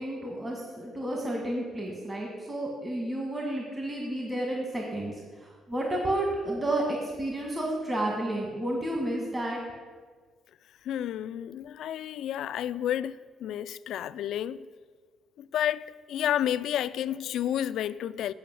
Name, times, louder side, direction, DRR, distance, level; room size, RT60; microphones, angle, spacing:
voice 1, 0.0-9.6, right 1 dB, 25° right, 1.8 m, -31 dB
voice 2, 10.8-13.2 13.4-14.7 15.4-18.3, left 11 dB, 80° left, 0.3 m, -30 dB
9.0 x 5.5 x 7.7 m
cardioid pair, 90°, 0 cm